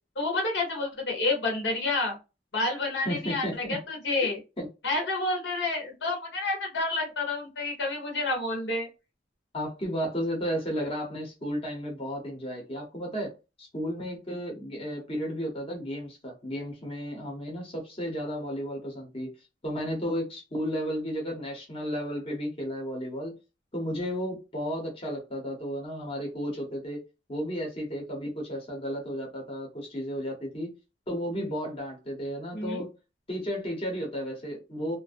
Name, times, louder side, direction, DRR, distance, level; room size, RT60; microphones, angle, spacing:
voice 1, 0.2-2.2 2.5-4.4 4.8-8.9 32.5-32.8, left 2 dB, 80° left, 1.0 m, -29 dB
voice 2, 3.0-3.8 4.2-4.7 9.5-13.3 13.6-19.3 19.6-23.4 23.7-27.0 27.3-30.7 31.1-32.9 33.3-35.0, equal, 30° left, 0.8 m, -33 dB
2.4 x 2.1 x 2.5 m
head